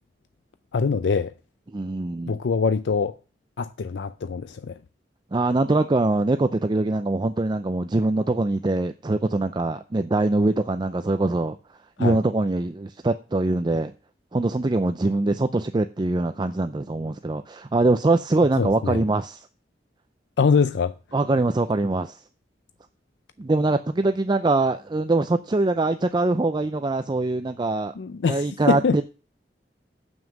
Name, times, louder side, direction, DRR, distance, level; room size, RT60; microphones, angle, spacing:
voice 1, 0.7-1.3 2.3-3.1 3.6-4.7 12.0-12.2 18.6-19.0 20.4-20.9 28.0-29.0, left 5 dB, 80° left, 0.5 m, -23 dB
voice 2, 1.7-2.4 5.3-11.6 12.0-13.9 14.3-19.5 21.1-22.2 23.4-27.9 28.3-29.0, right 2 dB, 25° right, 0.4 m, -23 dB
7.2 x 6.2 x 7.3 m
head